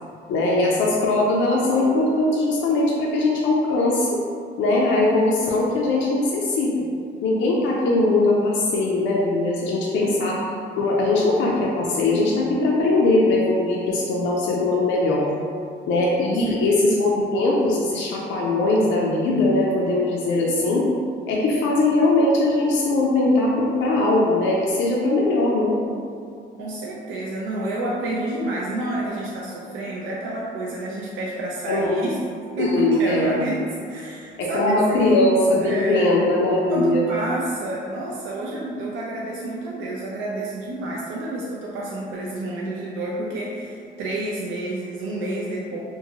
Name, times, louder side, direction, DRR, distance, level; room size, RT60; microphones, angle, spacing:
voice 1, 0.3-4.1 4.6-6.9 7.2-10.4 10.8-15.3 15.9-20.9 21.3-25.8 31.7-32.0 32.6-33.3 34.4-37.0, left 2 dB, 75° left, -4 dB, 0.4 m, -20 dB
voice 2, 10.0-10.3 16.2-16.5 16.9-17.0 26.6-32.2 32.6-35.3 35.6-36.1 36.7-45.8, right 2 dB, 80° right, -5 dB, 0.4 m, -29 dB
2.6 x 2.5 x 2.8 m, 2.3 s
cardioid pair, 90°, 20 cm